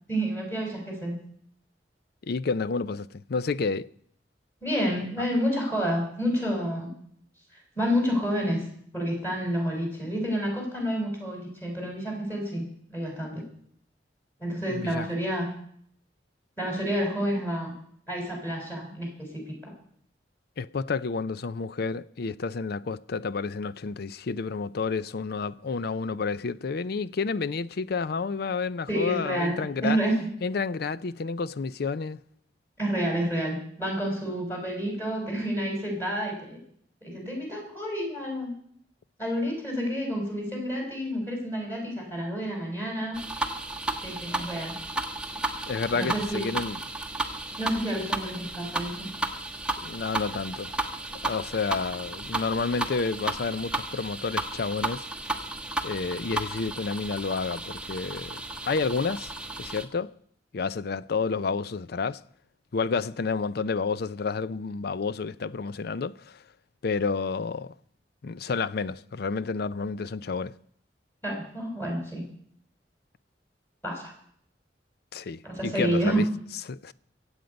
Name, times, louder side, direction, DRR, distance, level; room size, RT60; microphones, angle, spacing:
voice 1, 0.1-1.2 4.6-6.9 7.7-8.6 8.9-13.4 14.4-15.5 16.6-17.7 18.1-19.5 28.9-30.3 32.8-36.6 37.0-38.5 39.2-43.2 44.0-44.7 45.9-46.4 47.6-49.1 71.2-72.2 73.8-74.1 75.4-76.2, equal, 15° left, 4.8 m, -29 dB
voice 2, 2.2-3.9 14.7-15.1 20.6-30.0 30.4-32.2 45.7-46.8 49.8-50.8 51.2-55.0 55.8-59.3 59.6-60.1 60.5-62.2 62.7-66.4 66.8-67.7 68.2-70.5 75.1-76.3 76.7-76.9, left 4 dB, 60° left, 0.5 m, -30 dB
sound 1, 43.1-59.8, right 2 dB, 5° right, 1.1 m, -33 dB
24.5 x 8.2 x 5.2 m
head